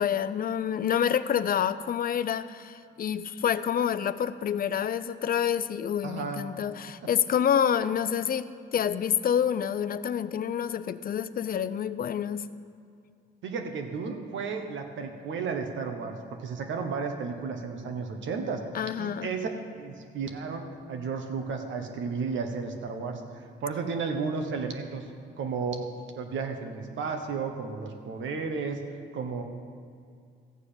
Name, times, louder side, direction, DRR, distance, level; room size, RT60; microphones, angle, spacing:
voice 1, 0.0-12.5 18.7-19.3, left 8 dB, 45° left, 13 dB, 0.5 m, -28 dB
voice 2, 6.0-6.4 13.4-18.7 19.0-19.5 19.8-25.1 25.4-25.9 26.1-28.8 29.1-29.4, right 5 dB, 75° right, 5 dB, 1.3 m, -33 dB
14.0 x 4.9 x 8.8 m, 2.3 s
cardioid pair, 90°, 20 cm